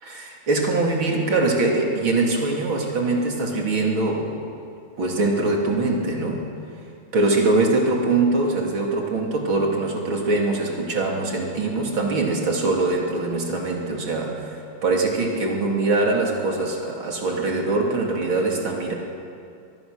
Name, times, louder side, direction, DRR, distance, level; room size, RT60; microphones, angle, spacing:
voice 1, 0.0-4.3 5.0-6.5 7.1-18.9, right 2 dB, 65° right, 0 dB, 3.8 m, -23 dB
24.5 x 19.0 x 6.7 m, 2.5 s
omnidirectional pair, 2.4 m